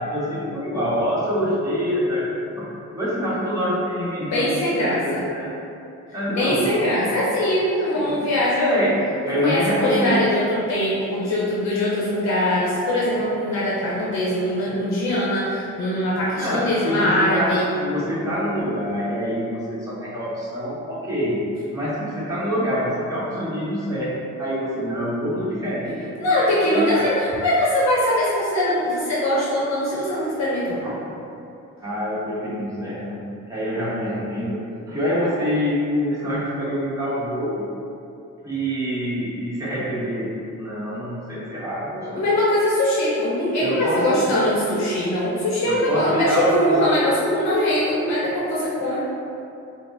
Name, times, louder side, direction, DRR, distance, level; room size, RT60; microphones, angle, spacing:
voice 1, 0.0-5.5 6.1-6.7 7.1-7.2 7.9-8.3 8.6-10.3 16.4-21.4 21.7-27.1 30.8-30.9 31.8-34.6 34.9-37.7 38.4-40.3 40.6-42.3 43.6-44.2 45.6-47.1 48.8-48.9, equal, 10° right, -10 dB, 1.2 m, -25 dB
voice 2, 4.2-5.2 6.3-8.7 9.3-17.7 26.2-30.8 42.0-49.0, left 1 dB, 65° left, -6 dB, 0.7 m, -22 dB
4.9 x 2.0 x 2.6 m, 2.6 s
cardioid pair, 90°, 30 cm